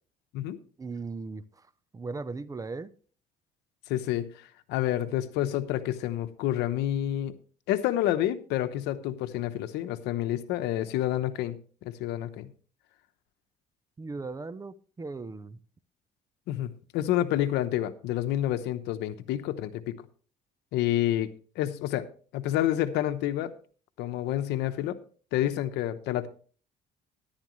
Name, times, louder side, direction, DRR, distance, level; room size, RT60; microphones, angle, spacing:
voice 1, 0.8-1.6 1.9-2.9 14.0-15.6, right 3 dB, 20° right, 17 dB, 0.6 m, -38 dB
voice 2, 3.9-4.3 4.7-7.3 7.7-12.5 16.5-19.9 20.7-21.3 21.6-22.0 22.3-23.5 24.0-25.0 25.3-26.3, left 13 dB, 90° left, 12 dB, 0.9 m, -28 dB
13.0 x 11.0 x 3.1 m, 0.41 s
cardioid pair, 110°, 17 cm